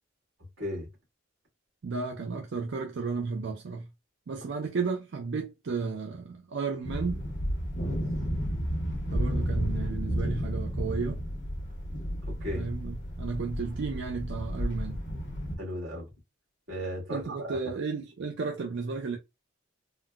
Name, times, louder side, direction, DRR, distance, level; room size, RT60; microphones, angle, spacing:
voice 1, 0.6-0.9 7.8-8.0 12.3-12.7 15.6-16.1 16.7-17.6, equal, 85° right, 1.6 m, -35 dB
voice 2, 1.8-3.9 4.3-7.2 9.1-11.2 12.5-15.0 17.1-19.2, right 4 dB, 60° right, 0.4 m, -33 dB
sound 1, 6.8-15.6, equal, 60° left, 1.0 m, -32 dB
3.8 x 2.1 x 2.2 m
head